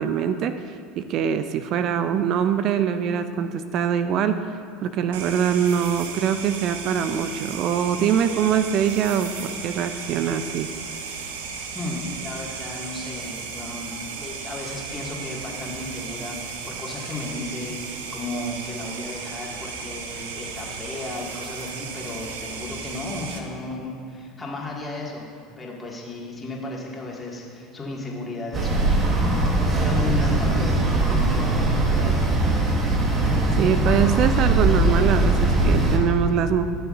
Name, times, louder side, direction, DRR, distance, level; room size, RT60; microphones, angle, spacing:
voice 1, 0.0-10.7 33.6-36.7, right 8 dB, 55° right, 10 dB, 0.4 m, -23 dB
sound 1, 5.1-23.4, right 5 dB, 85° right, 0.8 m, -35 dB
voice 2, 11.7-25.3 25.6-32.2, left 2 dB, 20° left, -3 dB, 2.0 m, -34 dB
sound 2, 28.5-36.0, right 2 dB, 35° right, 1.5 m, -20 dB
15.5 x 6.7 x 2.6 m, 2.4 s
hypercardioid pair, 90°, 0 cm